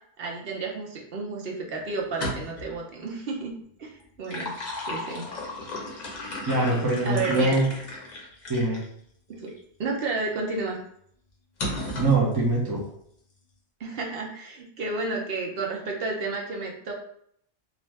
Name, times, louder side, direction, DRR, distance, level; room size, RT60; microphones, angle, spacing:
voice 1, 0.2-4.6 4.8-5.3 7.0-7.6 9.3-9.5 9.8-10.8 13.8-16.9, right 3 dB, 60° right, 0 dB, 0.8 m, -31 dB
sound 1, 2.0-2.7 4.0-8.9 9.5-9.6 11.6-12.2, left 1 dB, 45° left, 0.7 m, -34 dB
voice 2, 6.5-7.6 8.5-8.8 12.0-12.8, right 2 dB, 30° right, -4 dB, 0.5 m, -23 dB
2.5 x 2.4 x 3.1 m, 0.67 s
omnidirectional pair, 1.2 m